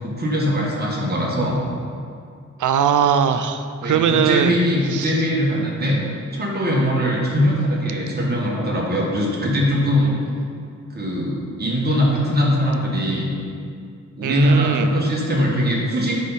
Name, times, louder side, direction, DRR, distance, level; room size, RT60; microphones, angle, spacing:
voice 1, 0.0-1.6 3.8-6.0 6.3-10.1 10.9-13.3 14.2-16.2, equal, 30° right, -4 dB, 1.5 m, -21 dB
voice 2, 2.6-4.6 4.9-5.1 14.2-14.9, right 8 dB, 85° right, 9 dB, 0.5 m, -20 dB
8.0 x 5.8 x 4.1 m, 2.3 s
wide cardioid pair, 135°, 30 cm